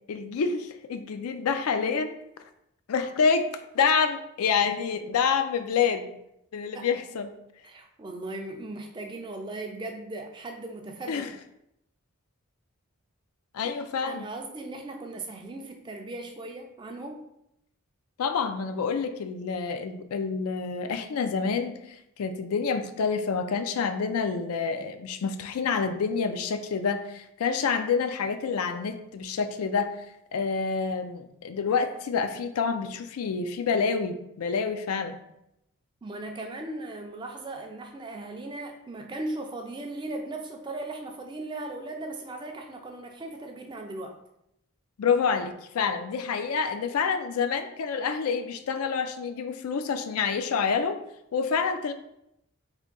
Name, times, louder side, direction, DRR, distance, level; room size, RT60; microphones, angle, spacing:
voice 1, 0.1-2.2 2.9-6.1 6.5-7.3 11.1-11.3 13.5-14.3 18.2-30.0 30.3-35.2 45.0-51.0 51.3-51.9, left 5 dB, 80° left, 8 dB, 0.4 m, -27 dB
voice 2, 7.6-11.3 14.0-17.2 36.0-44.1, right 2 dB, 20° right, 3 dB, 0.3 m, -38 dB
3.5 x 2.6 x 3.7 m, 0.80 s
head